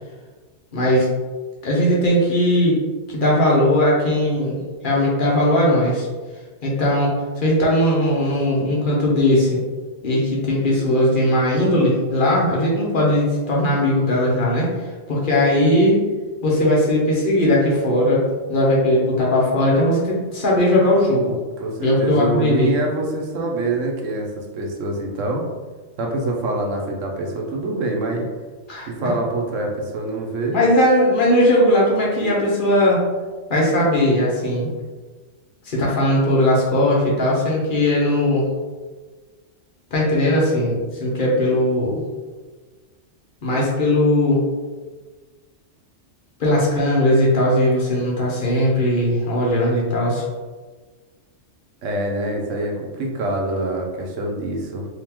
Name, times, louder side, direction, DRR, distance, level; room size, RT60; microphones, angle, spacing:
voice 1, 0.7-1.1 1.6-2.8 3.1-4.6 4.8-6.1 6.6-9.6 10.0-14.7 15.1-16.0 16.4-18.2 18.5-21.4 21.8-22.7 28.7-29.1 30.5-33.0 33.5-34.7 35.6-38.4 39.9-42.0 43.4-44.4 46.4-50.2, left 1 dB, 50° left, -4 dB, 0.9 m, -18 dB
voice 2, 21.6-25.4 26.0-28.3 28.9-30.6 51.8-54.9, right 2 dB, 90° right, 0 dB, 1.1 m, -25 dB
3.6 x 2.9 x 2.9 m, 1.4 s
omnidirectional pair, 1.3 m